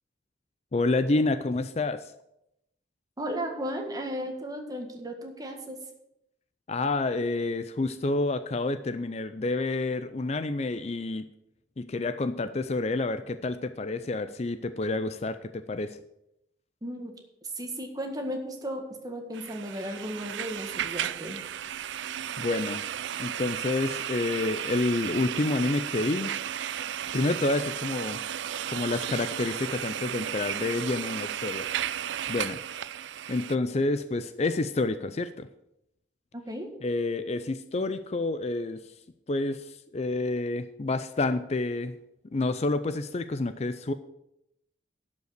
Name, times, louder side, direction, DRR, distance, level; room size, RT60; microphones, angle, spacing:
voice 1, 0.7-2.1 6.7-11.3 11.8-16.0 22.4-22.8 23.2-26.3 27.1-28.2 28.7-31.7 32.3-32.6 33.3-35.5 36.8-38.8 39.3-42.0 42.3-43.9, left 2 dB, 35° left, 11 dB, 0.5 m, -29 dB
voice 2, 3.2-5.8 16.8-17.1 17.5-21.4 36.3-36.7, equal, 20° right, 3 dB, 1.6 m, -35 dB
sound 1, 19.3-33.6, right 10 dB, 85° right, 0.4 m, -34 dB
11.5 x 5.4 x 8.0 m, 0.84 s
head